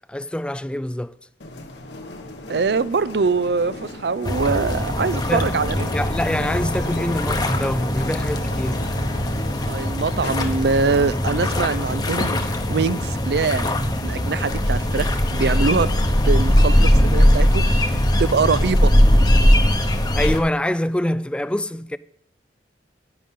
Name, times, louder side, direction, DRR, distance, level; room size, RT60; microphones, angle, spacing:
voice 1, 0.1-1.1 5.3-5.5 5.9-8.8 20.1-22.0, left 1 dB, 5° left, 0.3 m, -25 dB
sound 1, 1.4-17.4, left 1 dB, 80° left, 1.4 m, -37 dB
voice 2, 2.5-5.9 9.7-15.9 16.3-17.7 18.2-18.9, right 4 dB, 65° right, 0.5 m, -23 dB
sound 2, 4.2-20.4, equal, 25° left, 0.9 m, -20 dB
10.5 x 10.0 x 3.7 m
head